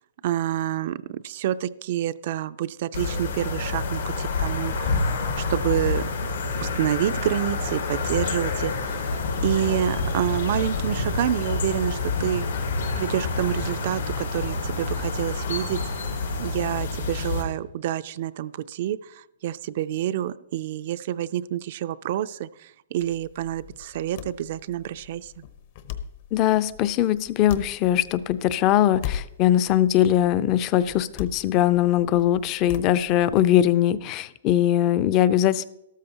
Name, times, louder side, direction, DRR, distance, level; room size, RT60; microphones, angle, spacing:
voice 1, 0.2-6.3 6.6-12.5 13.0-15.8 16.4-25.4, right 12 dB, 50° right, 13 dB, 0.4 m, -28 dB
sound 1, 2.9-17.4, left 3 dB, 90° left, 4.6 m, -28 dB
sound 2, 7.4-13.7, left 5 dB, 70° left, 2.8 m, -33 dB
sound 3, 23.0-33.5, left 9 dB, 45° left, 0.9 m, -39 dB
voice 2, 26.3-35.6, left 12 dB, 30° left, 15 dB, 0.5 m, -21 dB
13.5 x 13.0 x 2.9 m, 0.85 s
hypercardioid pair, 155°, 0 cm